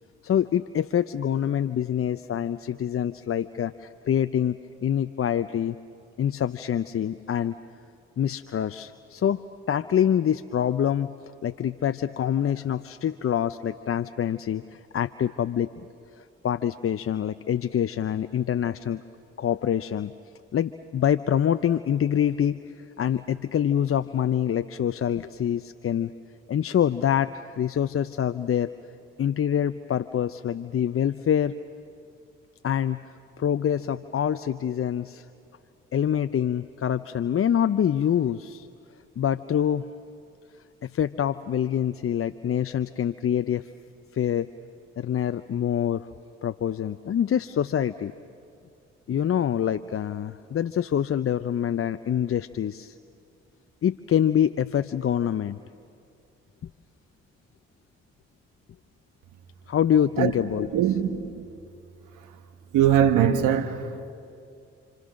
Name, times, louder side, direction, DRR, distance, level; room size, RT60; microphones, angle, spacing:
voice 1, 0.2-5.8 6.2-7.5 8.2-11.1 11.4-15.9 16.2-19.0 19.4-20.1 20.5-26.1 26.5-28.7 29.2-31.6 32.6-33.0 33.4-35.2 35.9-38.7 39.2-39.9 40.8-43.7 44.1-44.5 45.0-46.1 46.4-48.1 49.1-52.9 53.8-55.6 59.7-60.7, left 9 dB, 45° left, 0.7 m, -25 dB
voice 2, 60.7-61.4 62.7-64.1, right 9 dB, 75° right, 1.7 m, -22 dB
29.0 x 26.0 x 6.4 m
hypercardioid pair, 45°, 31 cm